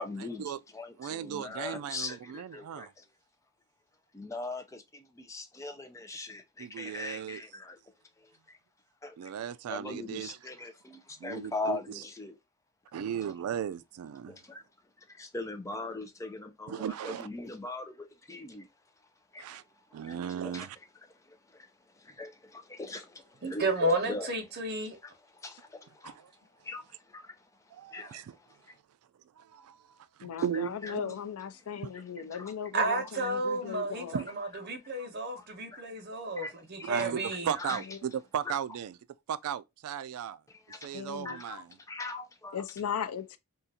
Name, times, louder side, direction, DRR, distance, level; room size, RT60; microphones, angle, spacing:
voice 1, 0.0-3.1 4.1-7.8 9.0-9.3 9.7-12.4 14.3-14.6 15.1-18.7 19.3-19.6 19.9-20.2 20.4-20.7 21.1-24.3 25.0-26.1 26.6-27.5 27.7-28.8 30.8-30.9 31.9-32.0 32.3-32.5 33.9-34.0 35.0-35.1 35.4-36.0 36.4-36.5 36.8-37.1 37.5-37.9 38.4-38.6 40.5-40.9 41.2-42.6, left 2 dB, 15° left, 0.4 m, -41 dB
voice 2, 1.0-2.9 6.6-7.4 9.2-10.4 11.2-11.8 12.9-14.4 16.7-17.3 19.4-19.6 19.9-20.8 26.0-26.1 27.7-28.3 29.4-29.8 30.2-31.1 34.1-34.3 36.8-38.9 39.3-40.4 40.8-41.6, right 9 dB, 90° right, 0.3 m, -36 dB
voice 3, 23.4-25.0 32.7-37.5, right 2 dB, 50° right, 0.8 m, -32 dB
voice 4, 30.2-34.2 37.9-38.0 40.9-41.4 42.5-43.4, left 7 dB, 85° left, 0.4 m, -37 dB
3.7 x 2.4 x 2.6 m
head